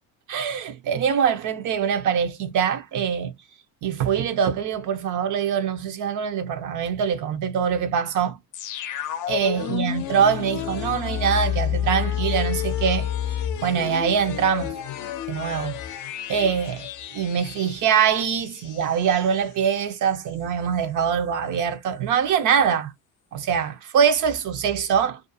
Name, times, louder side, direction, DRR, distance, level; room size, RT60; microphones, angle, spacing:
voice 1, 0.3-3.3 3.8-8.4 9.3-13.1 13.6-14.7 15.3-15.8 16.3-16.8 17.1-22.9 23.3-25.2, right 7 dB, 50° right, 0.5 m, -23 dB
sound 1, 8.5-19.3 19.7-19.8, left 11 dB, 55° left, 0.6 m, -30 dB
2.4 x 2.3 x 2.6 m
supercardioid pair, 75°, 39 cm